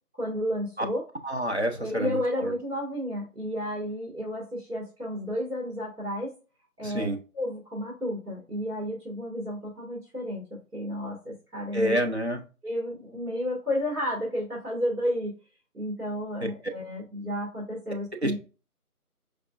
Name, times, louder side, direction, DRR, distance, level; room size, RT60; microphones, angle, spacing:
voice 1, 0.2-1.0 1.8-6.3 6.8-10.4 10.7-12.0 12.6-15.3 15.7-18.4, equal, 75° right, -4 dB, 1.7 m, -32 dB
voice 2, 1.2-2.5 6.8-7.2 11.7-12.4 18.2-18.3, equal, 45° right, 5 dB, 0.5 m, -28 dB
4.8 x 2.1 x 2.4 m, 0.33 s
figure-of-eight pair, 165°, 46 cm